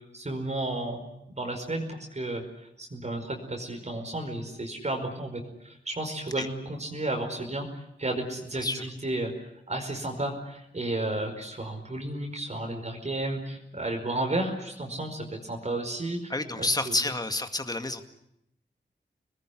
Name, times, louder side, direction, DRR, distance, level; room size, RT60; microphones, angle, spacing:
voice 1, 0.1-2.4 2.8-7.7 8.0-9.3 9.7-16.3 16.6-16.7, right 2 dB, 35° right, 2 dB, 5.1 m, -32 dB
voice 2, 16.3-18.0, left 2 dB, 20° left, 7 dB, 2.1 m, -29 dB
27.0 x 21.0 x 10.0 m, 0.79 s
wide cardioid pair, 120°, 19 cm